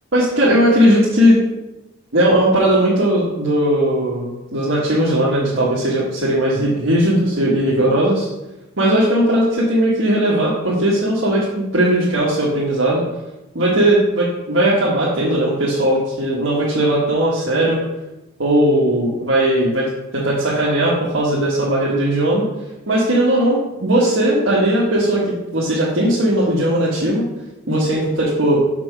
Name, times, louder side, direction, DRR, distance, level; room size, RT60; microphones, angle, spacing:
voice 1, 0.1-1.4 2.1-8.3 8.8-13.0 13.5-17.8 18.4-22.5 22.9-25.2 25.5-27.3 27.7-28.6, right 1 dB, 70° right, -7 dB, 1.6 m, -17 dB
6.0 x 5.5 x 6.1 m, 1.0 s
head